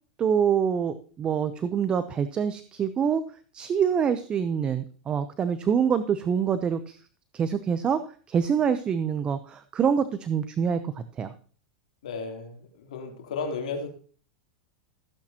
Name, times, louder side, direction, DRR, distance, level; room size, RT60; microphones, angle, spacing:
voice 1, 0.2-3.2 3.5-7.0 7.3-8.0 8.3-11.3, right 7 dB, 25° right, 11 dB, 0.7 m, -25 dB
voice 2, 12.0-13.9, left 4 dB, 80° left, 2 dB, 3.3 m, -34 dB
16.0 x 8.7 x 2.9 m, 0.41 s
hypercardioid pair, 125°, 4 cm